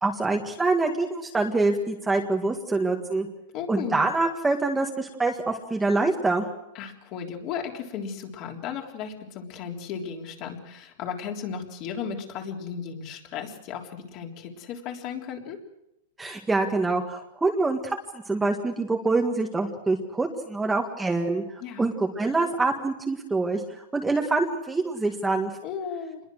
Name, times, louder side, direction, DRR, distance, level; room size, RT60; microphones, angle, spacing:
voice 1, 0.0-3.3 3.7-6.5 16.2-21.4 21.8-23.6 23.9-25.5, right 3 dB, 5° right, 2 dB, 1.8 m, -25 dB
voice 2, 3.5-4.0 6.7-15.6 21.6-21.9 25.6-26.2, left 7 dB, 35° left, 2 dB, 3.6 m, -35 dB
27.5 x 21.5 x 6.5 m, 0.87 s
supercardioid pair, 160°, 0 cm